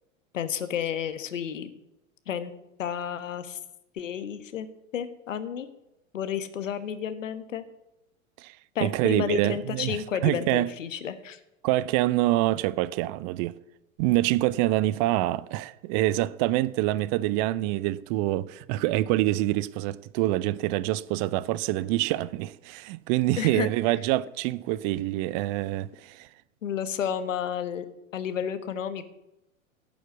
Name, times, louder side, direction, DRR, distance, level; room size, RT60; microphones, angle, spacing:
voice 1, 0.3-1.7 2.3-2.5 2.8-3.6 3.9-4.7 4.9-5.7 6.1-7.6 8.7-11.4 23.4-23.7 26.6-27.8 28.1-29.0, left 8 dB, 70° left, 1.4 m, -31 dB
voice 2, 8.8-10.7 11.6-13.6 14.0-26.3, right 16 dB, 30° right, 0.4 m, -26 dB
11.5 x 7.0 x 8.1 m
figure-of-eight pair, 95°, 40 cm